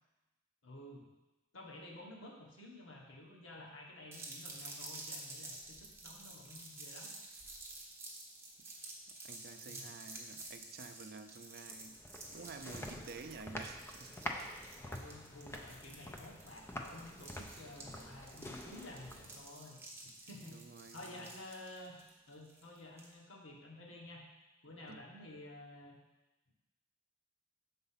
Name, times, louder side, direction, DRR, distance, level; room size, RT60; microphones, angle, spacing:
voice 1, 0.6-1.1 1.5-7.1 9.7-9.9 14.8-20.6 20.9-22.0 22.3-24.2 24.6-26.0, left 1 dB, 90° left, -2 dB, 1.4 m, -52 dB
sound 1, 4.1-23.1, right 2 dB, 15° right, 1.1 m, -51 dB
voice 2, 9.2-12.0 12.3-14.3 15.0-15.1 20.5-21.3 24.9-25.0, right 4 dB, 55° right, 7 dB, 0.5 m, -51 dB
sound 2, 11.7-19.5, left 1 dB, 15° left, 0.5 m, -47 dB
6.6 x 4.0 x 5.6 m, 1.1 s
head